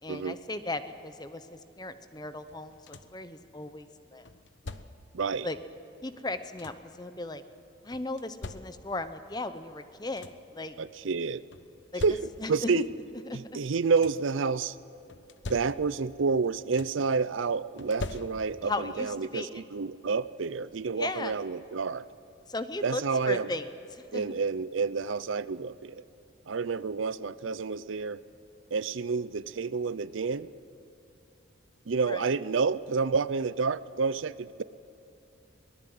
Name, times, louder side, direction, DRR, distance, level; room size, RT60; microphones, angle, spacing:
voice 1, 0.0-4.3 5.4-5.6 6.0-7.4 7.8-10.8 11.9-12.0 12.4-12.8 13.3-13.4 18.6-19.6 21.0-21.3 22.5-23.7 23.9-24.2 32.0-32.3, left 2 dB, 20° left, 11 dB, 0.8 m, -36 dB
sound 1, 2.5-3.3 4.2-5.2 6.1-7.0 7.9-9.1 9.7-9.8 10.0-10.6 11.5-12.7 13.6-14.4 15.1-16.1 16.4-17.1 17.8-18.8 20.1-20.2 20.7-20.9, left 2 dB, 65° left, 0.9 m, -44 dB
voice 2, 5.1-5.5 10.8-11.4 12.0-12.9 13.3-14.8 15.5-22.1 22.8-23.5 24.1-26.0 26.5-28.2 28.7-30.5 31.9-34.6, right 4 dB, 80° right, 17 dB, 0.6 m, -29 dB
24.0 x 18.5 x 7.9 m, 2.9 s
head